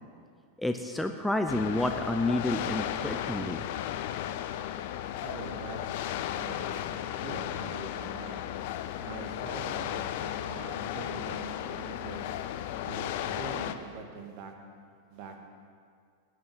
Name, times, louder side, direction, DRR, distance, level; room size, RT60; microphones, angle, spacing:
voice 1, 0.6-3.6, left 1 dB, 5° left, 5 dB, 0.6 m, -29 dB
sound 1, 1.5-13.7, left 11 dB, 50° left, 0.7 m, -35 dB
voice 2, 5.2-8.4 9.0-12.3 12.8-14.5 15.1-15.5, right 5 dB, 45° right, 4 dB, 1.6 m, -44 dB
17.5 x 6.5 x 7.3 m, 2.1 s
figure-of-eight pair, 90°, 0 cm